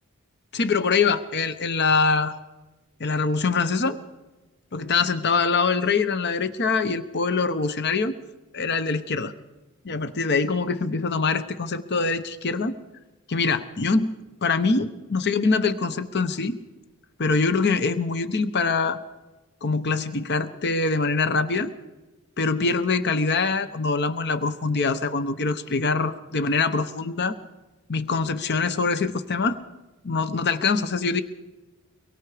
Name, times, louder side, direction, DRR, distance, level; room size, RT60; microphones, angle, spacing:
voice 1, 0.5-2.3 3.0-4.0 4.7-8.1 8.5-9.3 9.8-12.8 13.3-14.1 14.4-16.6 17.2-19.0 19.6-21.7 22.4-27.3 27.9-29.6 30.0-31.2, left 4 dB, 50° left, 11 dB, 1.0 m, -24 dB
24.0 x 22.5 x 5.0 m, 1.1 s
head